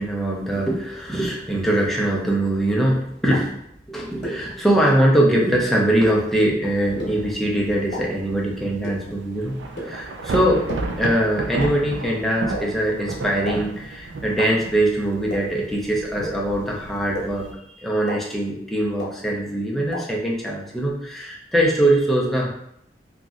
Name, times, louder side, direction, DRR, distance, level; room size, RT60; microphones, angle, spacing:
voice 1, 0.0-3.6 3.9-10.7 10.9-22.5, right 1 dB, ahead, -3 dB, 0.5 m, -22 dB
sound 1, 3.3-3.4 4.2-4.3 5.1-5.2 6.1-6.2 7.0-7.1 7.9-8.0 8.8-8.9 9.8-9.9 10.7-10.8 11.6-11.7 12.5-12.6 13.5-13.6 14.4-14.5 15.3-15.4 16.2-16.3 17.1-17.2 18.1-18.2 19.0-19.1 19.9-20.0, left 1 dB, 65° left, 0.9 m, -29 dB
Thunder / Rain, 6.6-17.5, right 2 dB, 75° right, 0.4 m, -33 dB
2.9 x 2.5 x 2.4 m, 0.72 s
head